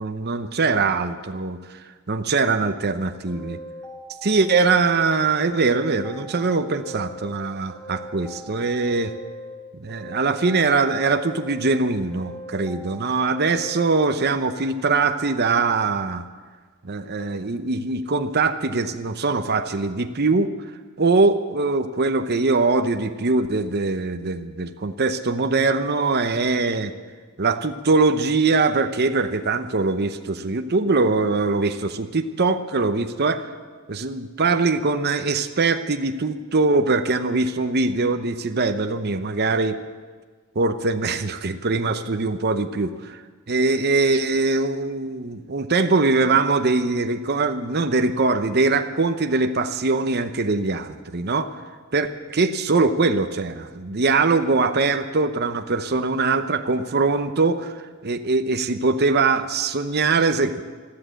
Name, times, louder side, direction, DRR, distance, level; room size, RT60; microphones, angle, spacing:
voice 1, 0.0-1.8 2.1-3.6 4.2-9.1 9.8-16.2 16.8-20.5 21.0-26.9 27.4-33.5 33.9-39.8 40.6-43.2 43.5-51.5 51.9-60.5, right 3 dB, 50° right, 8 dB, 0.8 m, -22 dB
sound 1, 3.3-5.2 5.5-7.4 7.7-9.6 9.9-11.8 12.1-14.0, equal, 5° left, 4.0 m, -40 dB
13.5 x 13.5 x 7.6 m, 1.5 s
head